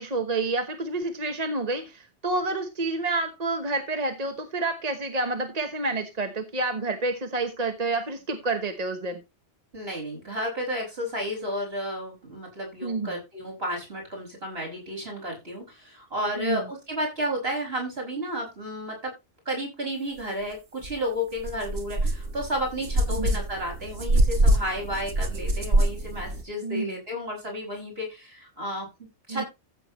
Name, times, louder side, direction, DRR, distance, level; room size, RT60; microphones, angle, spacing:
voice 1, 0.0-9.2 12.8-13.2 16.4-16.7 23.1-23.3 26.6-26.9 29.3-29.4, right 3 dB, 35° right, 6 dB, 1.2 m, -29 dB
voice 2, 9.7-19.1 19.4-29.5, equal, 60° right, 1 dB, 6.6 m, -32 dB
sound 1, 20.8-20.9 21.4-26.4, right 1 dB, 80° right, 1.9 m, -25 dB
14.5 x 7.8 x 3.1 m, 0.24 s
omnidirectional pair, 1.2 m